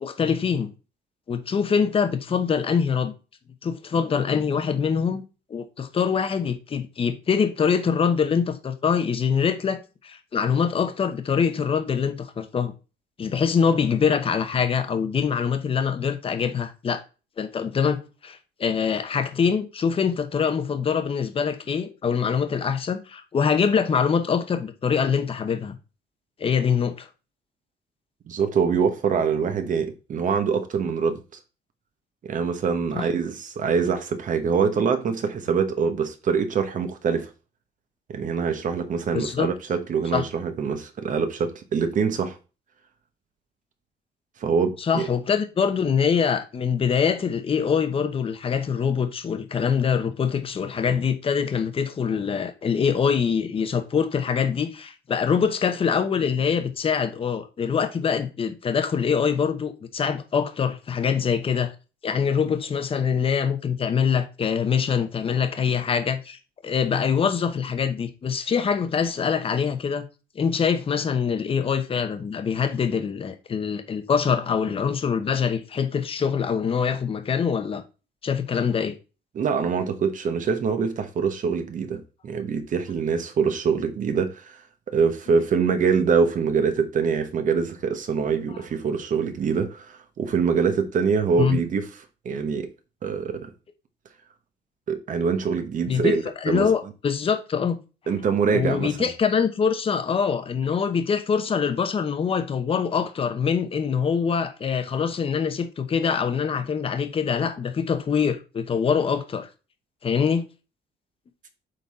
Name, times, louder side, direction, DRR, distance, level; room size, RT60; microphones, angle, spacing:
voice 1, 0.0-0.7 1.3-3.1 3.6-5.2 5.5-12.7 13.2-17.0 17.4-25.8 26.4-27.1 32.9-33.1 39.1-39.5 40.1-40.2 44.8-61.7 62.0-70.0 70.3-77.8 78.2-79.0 91.4-91.6 95.9-96.1 96.4-97.8 98.0-98.1 98.5-109.5 110.0-110.4, left 6 dB, 30° left, 0.9 m, -24 dB
voice 2, 28.3-31.2 32.2-37.3 38.1-42.4 44.4-45.0 79.3-84.6 84.9-91.9 92.2-92.7 93.0-93.5 94.9-96.7 98.1-98.9, right 6 dB, 45° right, 1.1 m, -24 dB
8.0 x 4.1 x 4.2 m
cardioid pair, 150°, 18 cm